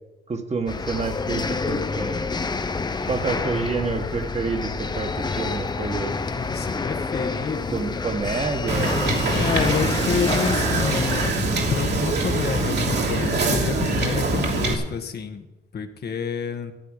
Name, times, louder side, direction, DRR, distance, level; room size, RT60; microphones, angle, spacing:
voice 1, 0.3-2.2 3.1-6.2 7.7-9.0, right 4 dB, 35° right, 5 dB, 1.8 m, -28 dB
sound 1, 0.7-11.3, left 4 dB, 20° left, 0.7 m, -28 dB
voice 2, 6.3-8.1 9.3-11.4 11.7-15.5 15.7-16.7, left 6 dB, 55° left, 6 dB, 1.4 m, -29 dB
Wind / Boat Water vehicle, 8.7-14.7, right 2 dB, 60° right, 2.7 m, -23 dB
14.0 x 9.0 x 6.5 m, 0.98 s
cardioid pair, 90°, 20 cm